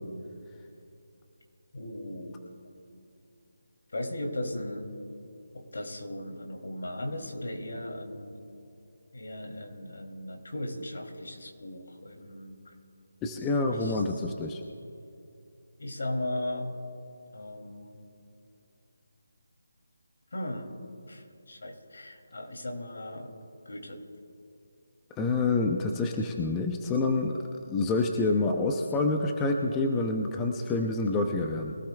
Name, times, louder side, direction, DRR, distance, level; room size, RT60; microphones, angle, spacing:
voice 1, 1.7-2.4 2.9-3.1 3.9-4.9 5.5-8.4 9.1-12.7 13.7-14.0 15.8-16.7 17.3-18.0 20.3-20.7 21.1-23.3 23.6-24.0, left 1 dB, 65° left, 3 dB, 2.8 m, -37 dB
voice 2, 13.2-14.6 25.2-27.4 27.7-31.7, left 3 dB, 10° left, 3 dB, 0.5 m, -27 dB
22.5 x 16.5 x 2.3 m, 2.6 s
figure-of-eight pair, 170°, 0 cm